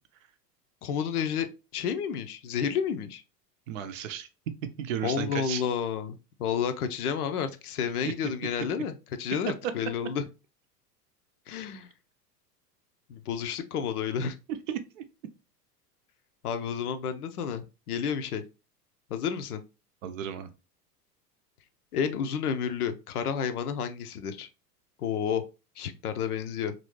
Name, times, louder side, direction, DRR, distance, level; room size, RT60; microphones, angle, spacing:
voice 1, 0.8-1.5 1.7-3.2 5.0-10.3 11.5-11.9 13.1-14.4 16.4-18.4 19.1-19.6 21.9-24.5 25.0-25.4 25.8-26.7, left 7 dB, 65° left, 0.6 m, -31 dB
voice 2, 3.7-4.3 4.8-5.6 14.5-15.0 20.0-20.5, right 9 dB, 55° right, 0.5 m, -34 dB
3.0 x 2.6 x 3.0 m
figure-of-eight pair, 85°, 48 cm